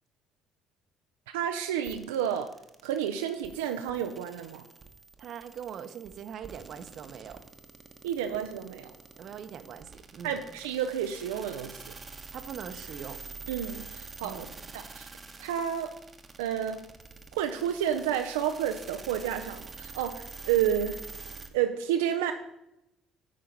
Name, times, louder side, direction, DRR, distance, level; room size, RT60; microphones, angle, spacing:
voice 1, 1.3-2.5 2.8-4.6 8.0-8.9 10.2-11.9 13.5-14.5 14.7-15.1 15.4-16.0 16.4-16.8 17.3-21.0 21.5-22.3, right 9 dB, 90° right, 6 dB, 0.4 m, -30 dB
sound 1, 1.8-21.5, right 4 dB, 30° right, 1.0 m, -47 dB
voice 2, 5.2-7.4 9.2-10.4 12.3-13.2 14.2-14.5, right 8 dB, 60° right, 10 dB, 0.8 m, -42 dB
10.0 x 4.4 x 5.3 m, 0.86 s
hypercardioid pair, 65°, 0 cm